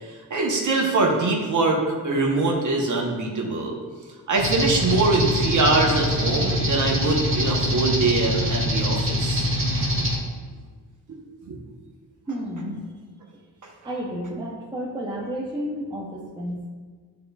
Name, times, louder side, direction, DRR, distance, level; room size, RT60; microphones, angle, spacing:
voice 1, 0.0-3.8 4.3-9.5 11.5-11.6, right 3 dB, 45° right, 0 dB, 0.9 m, -23 dB
sound 1, 4.4-10.2, left 1 dB, 30° right, 1.4 m, -24 dB
voice 2, 12.3-12.8 13.8-16.7, equal, 10° right, -3 dB, 0.6 m, -31 dB
11.0 x 3.9 x 2.3 m, 1.5 s
wide cardioid pair, 175°, 42 cm